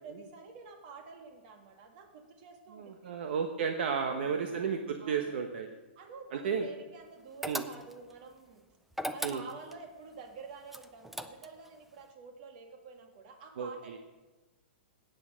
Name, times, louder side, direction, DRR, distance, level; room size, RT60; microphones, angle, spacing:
voice 1, 0.0-3.1 5.0-5.4 6.0-8.6 9.1-14.0, right 4 dB, 45° right, 4 dB, 2.1 m, -49 dB
voice 2, 2.8-5.8 6.3-6.7 7.5-7.6 9.2-9.4 13.6-14.0, right 6 dB, 65° right, 5 dB, 1.1 m, -33 dB
sound 1, 7.4-8.1 8.9-9.8 10.7-11.7, equal, ahead, 0.4 m, -38 dB
13.0 x 9.1 x 6.4 m, 1.2 s
hypercardioid pair, 160°, 6 cm